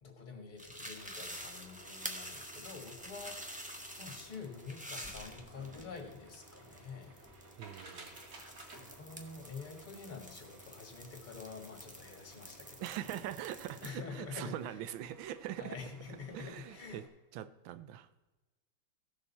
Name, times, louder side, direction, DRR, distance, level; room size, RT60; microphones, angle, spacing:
voice 1, 0.0-7.1 8.8-12.8 13.8-14.8 15.6-17.0, left 5 dB, 25° left, 4 dB, 1.5 m, -47 dB
sound 1, 0.6-13.9, equal, 10° right, 0.4 m, -49 dB
sound 2, 0.9-17.1, right 2 dB, 55° right, 2.2 m, -57 dB
voice 2, 7.5-8.2 12.8-15.8 16.3-17.0 17.3-18.1, right 11 dB, 75° right, 13 dB, 1.4 m, -42 dB
16.0 x 6.5 x 4.1 m, 1.1 s
omnidirectional pair, 2.3 m